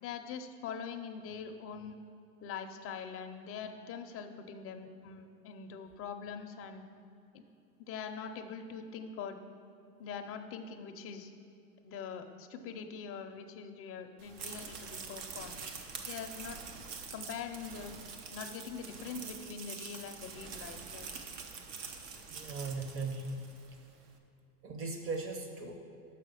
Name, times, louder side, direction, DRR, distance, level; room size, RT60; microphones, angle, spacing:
voice 1, 0.0-1.9 2.4-6.8 7.3-7.4 7.9-9.4 10.0-11.3 11.8-15.6 16.0-16.6 17.1-17.9 18.3-21.1, left 6 dB, 30° left, 5 dB, 0.5 m, -43 dB
sound 1, 14.2-23.7, right 5 dB, 65° right, 1.0 m, -45 dB
voice 2, 22.3-23.4 24.6-25.8, right 3 dB, 30° right, 4 dB, 1.0 m, -38 dB
6.1 x 5.7 x 6.7 m, 2.7 s
supercardioid pair, 125°, 46 cm